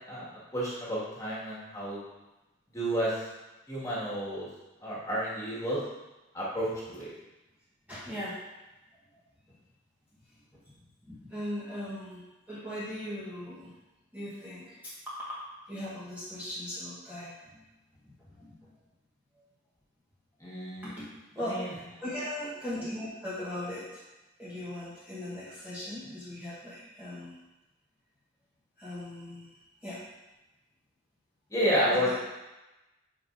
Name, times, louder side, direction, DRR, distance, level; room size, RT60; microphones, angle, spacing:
voice 1, 0.1-2.0 2.7-3.3 3.7-4.5 4.8-5.8 6.3-7.1 20.4-20.9 21.4-21.7 31.5-32.1, equal, 15° left, -8 dB, 1.8 m, -31 dB
voice 2, 7.9-8.4 9.1-9.2 10.5-10.6 11.0-13.7 14.1-14.8 15.7-17.6 18.0-18.7 20.8-24.0 24.4-27.4 28.8-30.0 31.9-32.1, left 1 dB, 10° right, -10 dB, 1.2 m, -39 dB
8.6 x 5.2 x 2.6 m, 1.0 s
head